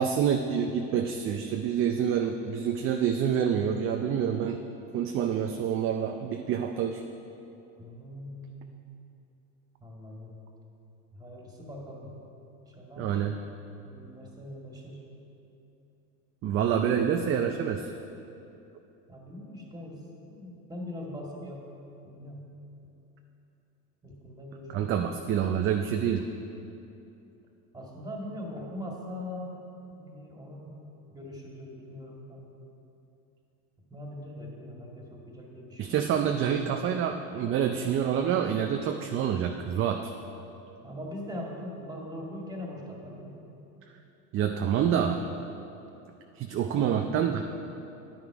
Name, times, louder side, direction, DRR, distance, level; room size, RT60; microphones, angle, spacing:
voice 1, 0.0-4.6 4.9-7.0 13.0-13.3 16.4-17.9 24.7-26.3 35.8-40.1 44.3-45.2 46.4-47.4, right 8 dB, 30° right, 4 dB, 0.5 m, -27 dB
voice 2, 7.8-8.7 9.8-10.4 11.1-12.1 12.7-13.2 13.8-15.0 16.5-16.9 19.1-21.6 22.0-22.5 24.0-24.8 27.7-29.5 29.9-30.8 31.1-32.5 33.9-36.0 40.8-43.4 46.6-46.9, left 1 dB, 10° right, -2 dB, 2.1 m, -41 dB
9.9 x 9.7 x 5.0 m, 2.8 s
supercardioid pair, 120°, 42 cm